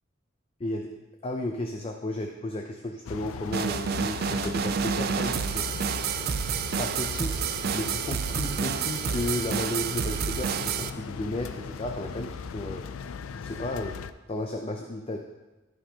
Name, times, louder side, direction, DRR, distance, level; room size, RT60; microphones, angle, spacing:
voice 1, 0.6-0.9 1.2-5.7 6.8-7.4 7.7-12.8 13.3-14.0 14.3-15.2, left 1 dB, 30° left, 3 dB, 0.5 m, -33 dB
sound 1, 3.1-14.1, left 6 dB, 85° left, 0.4 m, -38 dB
sound 2, 3.5-10.9, right 7 dB, 50° right, 0.3 m, -29 dB
13.0 x 5.4 x 2.8 m, 1.1 s
head